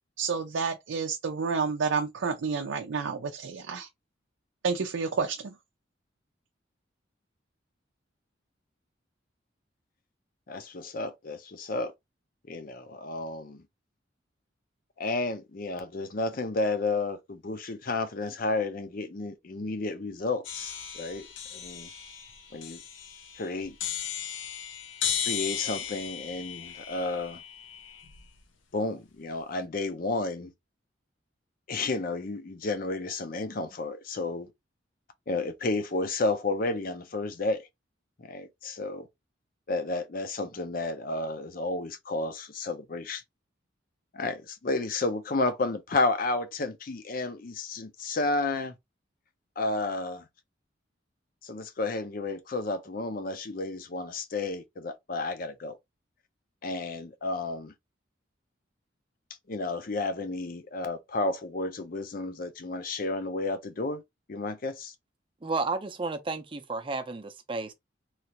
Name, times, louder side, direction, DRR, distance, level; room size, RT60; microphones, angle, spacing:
voice 1, 0.2-3.9 4.6-5.5, right 5 dB, 80° right, 0.4 m, -30 dB
voice 2, 10.5-11.9 12.5-13.6 15.0-21.3 21.5-21.9 22.5-22.8 23.4-23.8 25.3-27.4 28.7-30.5 31.7-34.5 35.3-37.7 38.2-39.1 39.7-43.2 44.1-48.8 49.6-50.3 51.4-55.8 56.6-57.7 59.5-64.0 64.3-64.9, left 3 dB, 50° left, 0.6 m, -31 dB
sound 1, 20.4-28.4, left 8 dB, 85° left, 0.6 m, -36 dB
voice 3, 65.4-67.7, right 3 dB, 25° right, 0.5 m, -32 dB
3.1 x 2.4 x 2.8 m
head